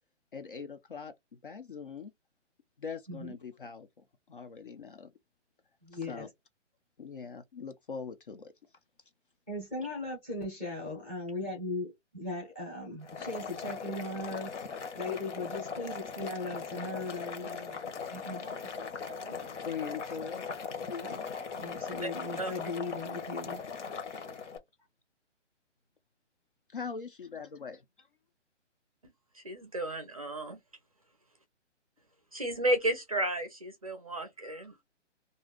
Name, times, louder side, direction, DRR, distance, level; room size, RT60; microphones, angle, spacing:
voice 1, 0.3-2.1 2.8-5.1 5.9-6.3 7.0-8.5 19.6-20.4 24.2-24.3 26.7-28.1, left 6 dB, 45° left, 0.4 m, -42 dB
voice 2, 5.8-6.3 9.5-14.5 14.9-19.4 20.9-21.2 21.6-23.6, left 2 dB, 10° left, 0.7 m, -38 dB
Boiling, 13.0-24.6, left 5 dB, 70° left, 1.0 m, -39 dB
voice 3, 29.4-30.6 32.3-34.8, right 1 dB, 30° right, 0.5 m, -33 dB
2.5 x 2.1 x 3.5 m
hypercardioid pair, 165°, 36 cm